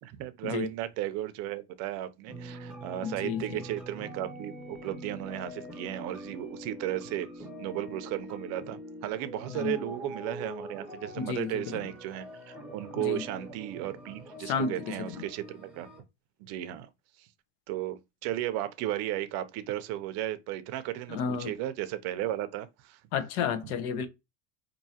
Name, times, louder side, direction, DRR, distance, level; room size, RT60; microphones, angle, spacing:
voice 1, 0.0-15.9 16.4-16.9 17.2-17.3 17.7-23.0, right 13 dB, 50° right, 0.5 m, -35 dB
sound 1, 2.3-16.0, equal, ahead, 0.6 m, -44 dB
voice 2, 3.0-3.6 9.5-9.8 11.2-11.9 13.0-13.2 14.4-15.2 21.1-21.5 23.1-24.1, left 6 dB, 85° left, 0.9 m, -32 dB
4.6 x 2.7 x 2.7 m
cardioid pair, 165°, 35 cm